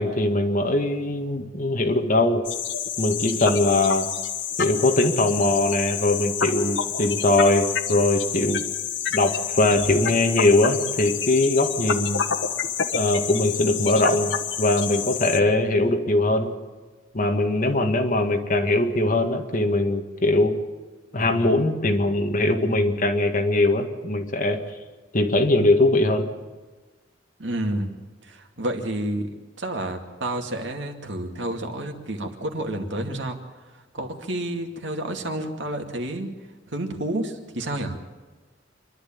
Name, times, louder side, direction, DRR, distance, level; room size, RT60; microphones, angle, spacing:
voice 1, 0.0-2.4 3.0-4.1 4.6-8.6 9.1-12.2 12.9-16.5 17.1-20.5 21.1-24.6 25.1-26.3, left 2 dB, 45° left, 4 dB, 2.0 m, -21 dB
sound 1, 2.4-15.4, left 8 dB, 80° left, 1.3 m, -28 dB
voice 2, 27.4-27.9 28.3-29.3 29.6-33.4 33.9-36.3 36.7-38.0, right 1 dB, 75° right, 4 dB, 2.4 m, -29 dB
27.0 x 11.5 x 8.8 m, 1.3 s
head